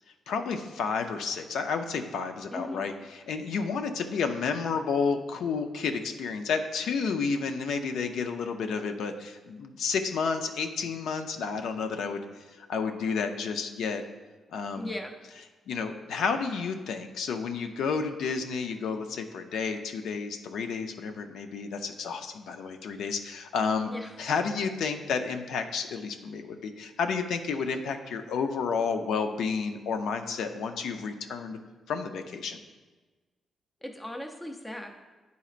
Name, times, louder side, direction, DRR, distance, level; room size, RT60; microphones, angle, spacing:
voice 1, 0.3-14.0 14.5-14.9 15.7-23.9 24.2-31.6 31.9-32.6, left 5 dB, 80° left, 6 dB, 0.4 m, -31 dB
voice 2, 2.5-2.8 14.7-15.1 23.9-24.2 33.8-34.9, left 1 dB, 10° left, 3 dB, 0.5 m, -38 dB
10.0 x 4.1 x 2.5 m, 1.3 s
wide cardioid pair, 170°, 0 cm